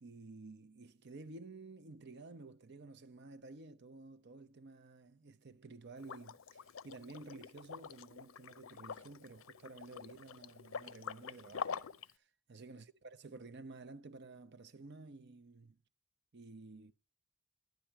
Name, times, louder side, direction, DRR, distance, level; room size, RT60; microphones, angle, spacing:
voice 1, 0.0-15.8 16.3-16.9, right 3 dB, 55° right, 0.7 m, -53 dB
Liquid, 6.0-12.1, left 6 dB, 80° left, 0.5 m, -46 dB
12.0 x 10.5 x 4.5 m
head